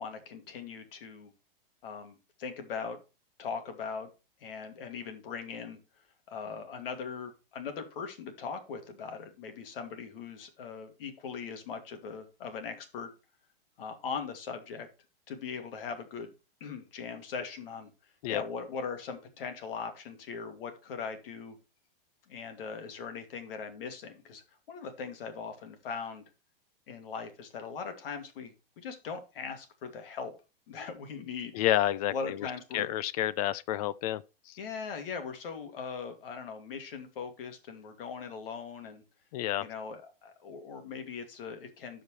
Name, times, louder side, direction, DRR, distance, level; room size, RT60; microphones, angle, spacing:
voice 1, 0.0-1.3 1.8-3.0 3.4-4.1 4.4-5.8 6.3-13.1 13.8-14.9 15.3-16.3 16.6-17.9 18.3-21.6 22.3-26.2 26.9-30.3 30.7-31.6 32.1-32.9 34.6-39.0 39.6-42.0, left 5 dB, 65° left, 2.4 m, -40 dB
voice 2, 31.5-32.1 32.7-34.2 34.5-34.6 39.3-39.6, left 13 dB, 40° left, 0.5 m, -29 dB
12.0 x 5.1 x 3.2 m
hypercardioid pair, 145°, 30 cm